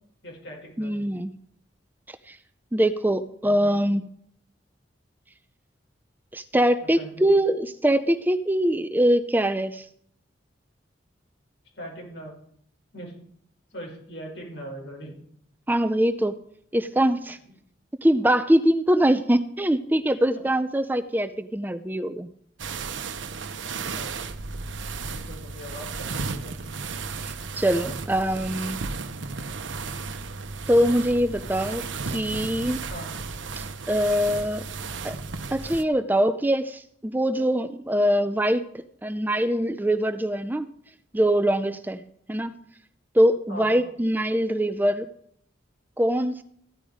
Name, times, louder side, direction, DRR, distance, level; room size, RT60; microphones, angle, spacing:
voice 1, 0.2-1.1 3.4-3.7 6.8-7.3 11.7-12.3 12.9-13.2 13.7-15.1 23.6-24.1 25.1-26.6 32.9-33.1 43.5-43.8, equal, 65° left, -1 dB, 6.0 m, -40 dB
voice 2, 0.8-1.3 2.3-2.4 2.7-4.1 6.3-9.9 15.7-16.3 16.7-17.4 18.0-22.3 27.2-28.8 30.7-32.8 33.6-34.6 35.0-35.2 35.5-38.6 39.0-40.7 41.1-42.0 42.3-42.5 43.1-45.1 46.0-46.4, equal, 10° right, 10 dB, 0.5 m, -23 dB
sound 1, 22.6-35.8, right 4 dB, 85° right, 0.9 m, -34 dB
15.0 x 11.0 x 5.0 m, 0.66 s
head